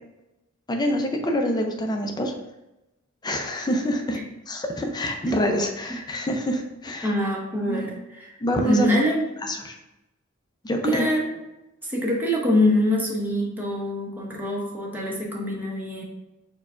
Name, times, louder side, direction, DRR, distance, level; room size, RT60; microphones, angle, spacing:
voice 1, 0.7-2.3 3.2-4.2 4.5-7.1 7.7-7.9 8.4-9.0 9.4-9.7 10.6-11.0, equal, 20° left, 3 dB, 0.5 m, -26 dB
voice 2, 7.0-8.4 8.6-9.5 10.8-11.4 11.9-16.0, left 1 dB, 10° right, -3 dB, 0.9 m, -25 dB
4.5 x 2.3 x 4.8 m, 0.93 s
head